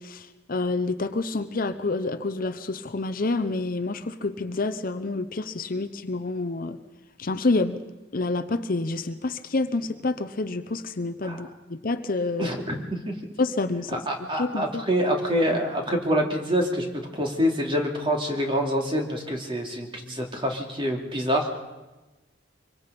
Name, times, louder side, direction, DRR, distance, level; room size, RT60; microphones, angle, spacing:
voice 1, 0.0-6.8 7.2-7.8 8.1-12.5 13.4-14.0 14.4-14.8, left 3 dB, 50° left, 10 dB, 0.8 m, -28 dB
voice 2, 12.4-13.0 13.9-16.8 17.1-21.6, equal, 30° right, 1 dB, 3.0 m, -26 dB
25.0 x 23.0 x 5.3 m, 1.1 s
head